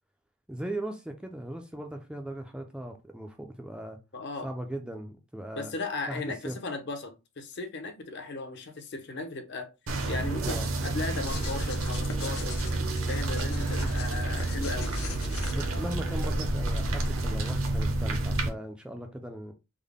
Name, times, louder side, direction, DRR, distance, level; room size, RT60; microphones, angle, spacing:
voice 1, 0.5-4.0 4.4-5.7 6.1-6.6 10.4-10.7 15.5-19.5, right 1 dB, 5° right, 0.3 m, -38 dB
voice 2, 4.1-4.5 5.5-9.7 10.1-12.6 13.1-14.9, left 3 dB, 55° left, 0.7 m, -36 dB
sound 1, 9.9-18.5, right 2 dB, 65° right, 0.7 m, -30 dB
sound 2, 11.2-16.0, left 1 dB, 85° left, 0.7 m, -38 dB
3.6 x 2.0 x 3.5 m
head